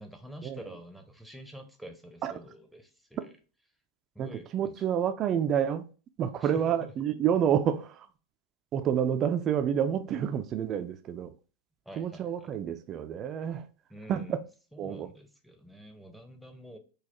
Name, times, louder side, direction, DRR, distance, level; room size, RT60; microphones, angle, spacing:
voice 1, 0.0-3.3 4.1-4.8 6.4-6.9 11.9-12.5 13.9-14.4 14.7-16.8, equal, ahead, 0.7 m, -47 dB
voice 2, 4.2-5.9 6.2-8.1 8.7-11.3 12.0-13.6 14.1-14.4 14.8-15.1, right 9 dB, 35° right, 0.3 m, -29 dB
4.0 x 2.3 x 3.0 m
hypercardioid pair, 95°, 0 cm